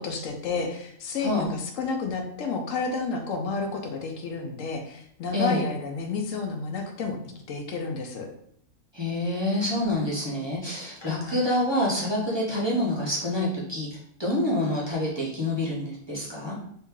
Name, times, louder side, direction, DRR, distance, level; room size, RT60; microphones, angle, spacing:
voice 1, 0.0-7.2 7.5-8.3 11.0-11.4, left 4 dB, 80° left, 3 dB, 1.0 m, -31 dB
voice 2, 5.3-5.6 8.9-13.9 14.2-16.6, left 1 dB, 25° right, -5 dB, 0.7 m, -27 dB
2.9 x 2.7 x 3.6 m, 0.70 s
omnidirectional pair, 1.3 m